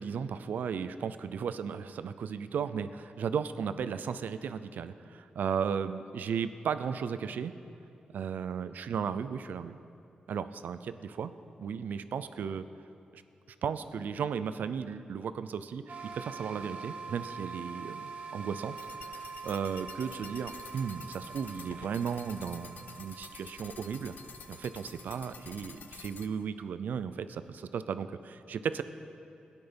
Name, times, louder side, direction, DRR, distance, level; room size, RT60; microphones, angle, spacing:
voice 1, 0.0-7.5 8.1-9.8 10.3-11.3 11.6-12.6 13.1-13.2 13.6-18.8 19.1-24.2 24.5-28.8, right 7 dB, 90° right, 12 dB, 0.5 m, -35 dB
sound 1, 15.9-26.4, right 5 dB, 55° right, 1.5 m, -45 dB
sound 2, 18.8-26.3, left 7 dB, 80° left, 0.6 m, -50 dB
17.0 x 10.0 x 5.3 m, 2.7 s
wide cardioid pair, 100°, 3 cm